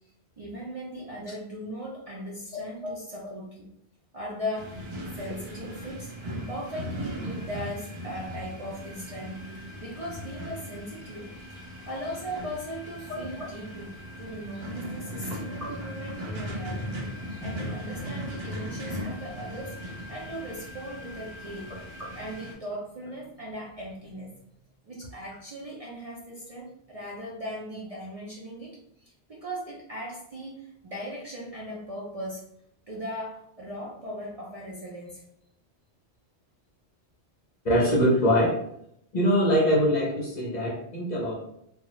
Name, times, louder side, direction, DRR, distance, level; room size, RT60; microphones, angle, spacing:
voice 1, 0.4-3.7 4.1-4.9 5.1-6.1 6.5-9.4 9.8-11.3 11.9-16.9 17.2-21.7 22.0-24.4 24.8-32.4 32.9-35.2, equal, 45° right, -5 dB, 0.5 m, -38 dB
sound 1, 4.5-22.5, equal, 65° right, 1.1 m, -38 dB
voice 2, 37.6-38.6 39.1-41.3, equal, 45° left, -3 dB, 0.7 m, -23 dB
2.7 x 2.3 x 3.0 m, 0.74 s
omnidirectional pair, 1.1 m